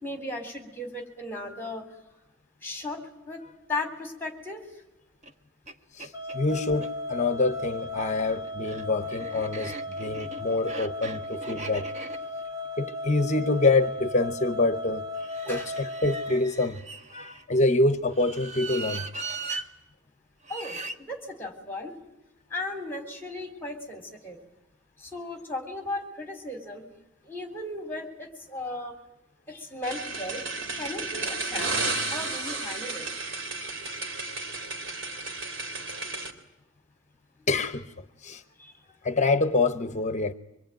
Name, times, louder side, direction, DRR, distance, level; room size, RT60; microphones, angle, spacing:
voice 1, 0.0-1.8 2.6-3.4 3.7-4.6 15.5-15.7 19.5-19.6 20.5-21.9 22.5-24.4 25.0-26.8 27.2-28.9 29.5-30.4 30.8-33.1 34.1-34.3 38.6-38.7, left 2 dB, 10° left, 3.7 m, -36 dB
sound 1, 5.2-5.3 5.7-5.8 6.0-6.9 7.8-14.0 15.2-17.4 18.1-19.7 20.4-21.0, right 3 dB, 35° right, 1.2 m, -40 dB
voice 2, 5.9-11.9 12.8-15.1 15.4-16.8 17.1-19.1 37.5-37.9 38.2-38.4 39.0-40.3, left 2 dB, 35° left, 0.9 m, -26 dB
sound 2, 6.1-16.4, left 2 dB, 20° right, 3.5 m, -36 dB
sound 3, 29.8-36.3, right 3 dB, 65° right, 3.3 m, -33 dB
25.0 x 22.0 x 9.1 m
head